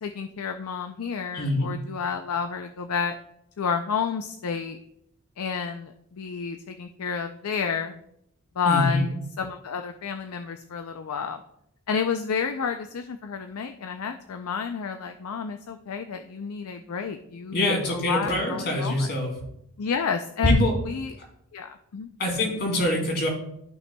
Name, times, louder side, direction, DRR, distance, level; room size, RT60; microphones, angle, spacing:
voice 1, 0.0-3.2 3.6-4.8 5.4-8.0 8.6-9.1 9.4-11.4 11.9-19.1 19.8-21.1 21.5-22.1, left 6 dB, 70° left, 7 dB, 0.5 m, -30 dB
voice 2, 1.3-1.7 8.7-9.0 17.5-19.3 20.4-20.8 22.2-23.3, left 1 dB, 50° left, 0 dB, 2.8 m, -24 dB
13.5 x 5.9 x 2.2 m, 0.76 s
head